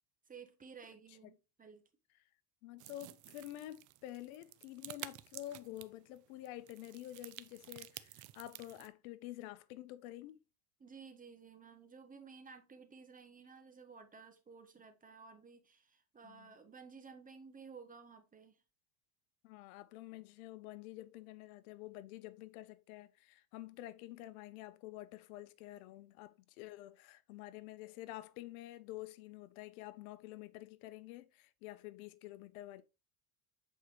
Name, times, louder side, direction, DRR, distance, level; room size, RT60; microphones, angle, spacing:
voice 1, 0.3-1.8 10.8-18.6, right 5 dB, 20° right, 1.2 m, -55 dB
voice 2, 2.6-10.4 16.2-16.5 19.4-32.8, left 15 dB, 80° left, 0.8 m, -49 dB
sound 1, 2.8-8.9, right 16 dB, 45° right, 0.6 m, -52 dB
8.2 x 4.6 x 3.0 m
supercardioid pair, 120°, 42 cm